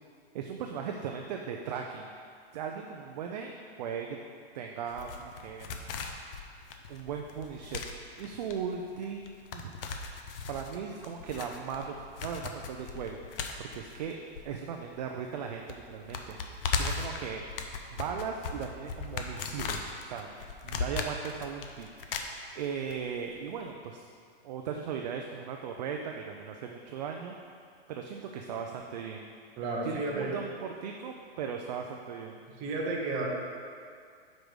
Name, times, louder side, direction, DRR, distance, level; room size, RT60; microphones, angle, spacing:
voice 1, 0.3-2.1 2.5-4.1 4.5-5.7 6.9-7.8 8.2-9.2 9.5-9.7 10.1-10.2 10.5-13.2 13.6-14.2 14.4-16.4 16.8-17.4 17.9-20.3 20.6-22.2 22.5-24.1 24.4-27.3 27.9-29.3 29.8-32.4, right 7 dB, 40° right, 2 dB, 0.4 m, -38 dB
sound 1, 4.9-15.0 15.2-15.3 15.7-23.0 23.2-23.3, left 5 dB, 60° left, 0.7 m, -37 dB
voice 2, 29.6-30.3 32.6-33.3, right 2 dB, 25° right, -2 dB, 1.0 m, -32 dB
5.2 x 4.8 x 6.1 m, 2.3 s
hypercardioid pair, 160°, 32 cm